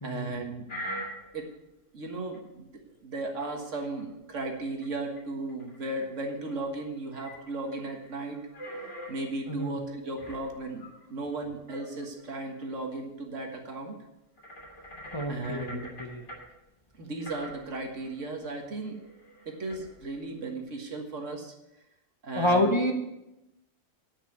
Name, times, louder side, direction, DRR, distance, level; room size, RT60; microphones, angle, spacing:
voice 1, 0.0-0.7 1.3-1.5 1.9-2.7 3.0-8.4 9.1-13.9 15.3-16.0 17.0-19.0 19.5-21.5 22.2-22.7, right 2 dB, 75° right, 2 dB, 2.0 m, -36 dB
sound 1, 0.7-1.6 2.3-2.4 3.4-4.2 4.6-4.9 5.2-5.3 5.5-6.7 7.0-9.1 10.2-11.2 11.7-12.7 13.1-13.2 14.4-16.4 17.2-20.6, equal, 70° left, 3.3 m, -44 dB
voice 2, 15.1-16.2 22.3-22.9, left 1 dB, 25° left, 2 dB, 1.0 m, -28 dB
9.9 x 5.8 x 8.5 m, 0.91 s
omnidirectional pair, 1.3 m